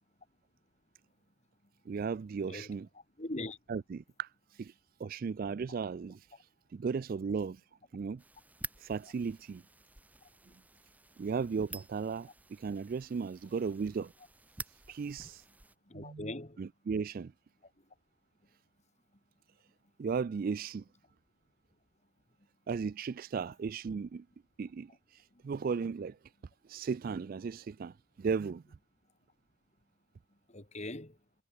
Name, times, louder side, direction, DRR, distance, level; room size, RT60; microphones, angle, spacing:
voice 1, 1.9-2.9 3.7-4.3 4.6-4.7 5.0-6.2 6.7-7.6 7.9-8.2 8.8-9.6 11.2-14.1 14.9-15.4 15.9-16.3 16.6-17.3 20.0-20.8 22.7-24.3 24.6-26.2 26.7-28.6, right 5 dB, 45° right, 0.3 m, -36 dB
voice 2, 3.2-3.6 15.9-16.6 30.5-31.2, left 1 dB, 35° left, 2.3 m, -40 dB
sound 1, 8.2-15.8, right 3 dB, 10° right, 0.9 m, -50 dB
head